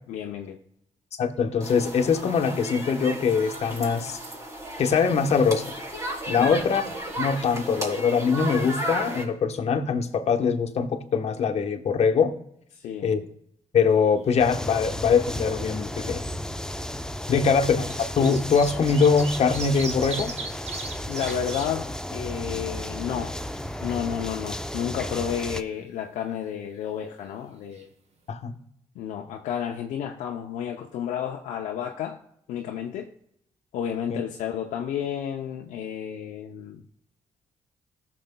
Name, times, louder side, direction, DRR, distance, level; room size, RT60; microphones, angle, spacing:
voice 1, 0.1-0.6 6.4-6.6 12.7-13.1 17.2-17.5 21.1-23.4 23.8-27.9 29.0-32.2 32.5-33.1 33.7-36.8, left 9 dB, 85° left, 0.6 m, -31 dB
voice 2, 1.2-4.2 4.8-5.7 6.3-6.8 7.2-12.3 13.0-13.2 13.7-16.2 17.3-20.3 28.3-28.5 34.1-34.2, left 5 dB, 60° left, 1.0 m, -23 dB
sound 1, 1.6-9.2, right 1 dB, 25° right, 3.6 m, -34 dB
sound 2, 14.2-14.9 15.2-15.3 16.4-16.5 17.4-21.7 22.1-22.2 22.5-23.5 27.4-27.5 27.7-27.8, right 4 dB, 60° right, 1.3 m, -38 dB
sound 3, 14.4-25.6, left 1 dB, 5° left, 0.6 m, -34 dB
16.5 x 6.6 x 2.2 m
supercardioid pair, 60°, 12 cm